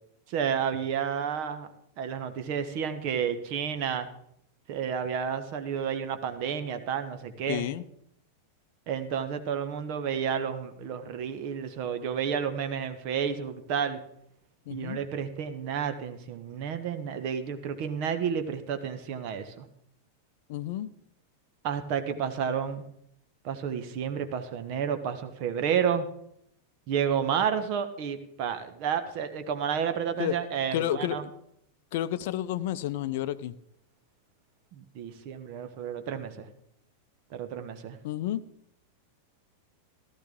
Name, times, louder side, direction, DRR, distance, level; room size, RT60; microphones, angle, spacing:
voice 1, 0.3-1.7 2.0-4.1 4.7-7.7 8.9-14.0 14.7-19.7 21.6-22.9 23.4-26.1 26.9-31.2 34.7-36.5 37.3-38.0, right 7 dB, 45° right, 9 dB, 1.1 m, -31 dB
voice 2, 7.5-7.8 14.7-15.0 20.5-20.9 30.2-30.4 30.7-31.3 31.9-33.6 38.0-38.4, left 12 dB, 50° left, 15 dB, 0.5 m, -30 dB
15.0 x 12.5 x 3.7 m, 0.71 s
figure-of-eight pair, 90°, 0 cm